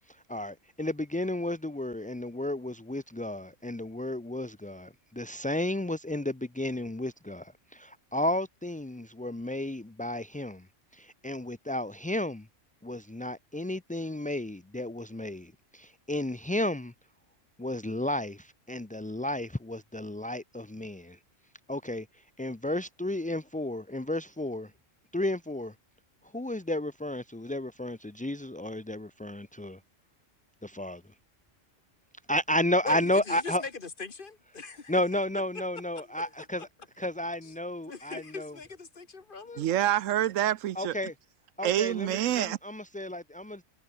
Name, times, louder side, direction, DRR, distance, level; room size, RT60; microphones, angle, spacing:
voice 1, 0.1-10.7 10.9-12.5 12.8-16.9 17.6-21.2 21.7-24.7 25.1-25.7 26.3-29.8 30.6-31.0 32.3-33.6 34.9-36.7 37.0-38.6 40.7-41.1 41.6-43.6, left 1 dB, 10° left, 0.3 m, -32 dB
voice 2, 32.8-33.7 34.0-35.0 36.0-36.3 37.4-37.5 37.9-39.7, left 4 dB, 45° left, 1.6 m, -40 dB
voice 3, 39.6-40.9 41.6-42.6, right 12 dB, 80° right, 1.0 m, -27 dB
omnidirectional pair, 1.3 m